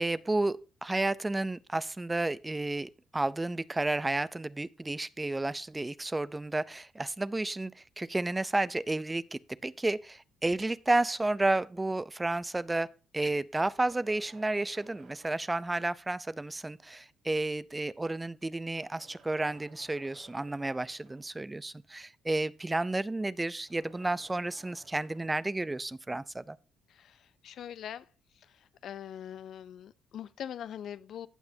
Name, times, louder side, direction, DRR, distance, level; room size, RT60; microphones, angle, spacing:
voice 1, 0.0-12.9 13.1-26.6, right 2 dB, 15° right, 0.4 m, -31 dB
sound 1, 13.8-16.5 17.3-17.4 18.5-21.6 23.4-26.5, right 5 dB, 70° right, 2.3 m, -59 dB
voice 2, 26.9-28.0 28.4-31.3, left 9 dB, 65° left, 0.5 m, -43 dB
16.0 x 6.0 x 2.7 m
supercardioid pair, 70°, 0 cm